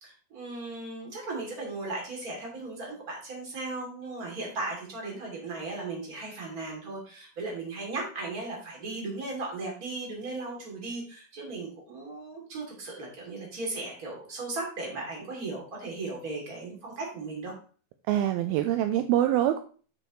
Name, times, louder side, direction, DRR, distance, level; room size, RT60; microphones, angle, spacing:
voice 1, 0.0-17.5, right 3 dB, 25° right, -1 dB, 2.7 m, -37 dB
voice 2, 18.1-19.6, right 12 dB, 80° right, 8 dB, 2.2 m, -24 dB
9.0 x 7.0 x 3.1 m, 0.40 s
omnidirectional pair, 4.6 m